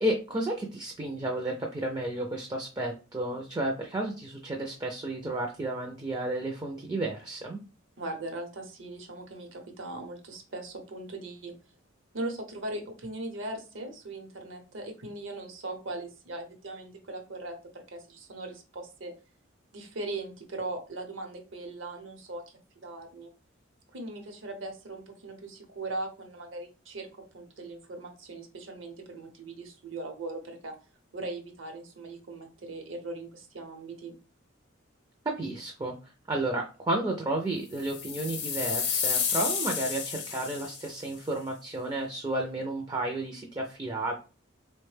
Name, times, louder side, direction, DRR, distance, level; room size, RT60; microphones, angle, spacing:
voice 1, 0.0-7.6 35.4-35.9 36.3-44.1, right 1 dB, 20° right, 1 dB, 0.4 m, -32 dB
voice 2, 8.0-11.5 12.1-19.1 19.7-22.4 22.8-23.3 23.9-30.7 31.1-34.1, right 2 dB, 70° right, 4 dB, 0.8 m, -39 dB
sound 1, 37.8-41.0, left 6 dB, 55° left, 0.7 m, -31 dB
3.4 x 2.1 x 3.2 m, 0.34 s
head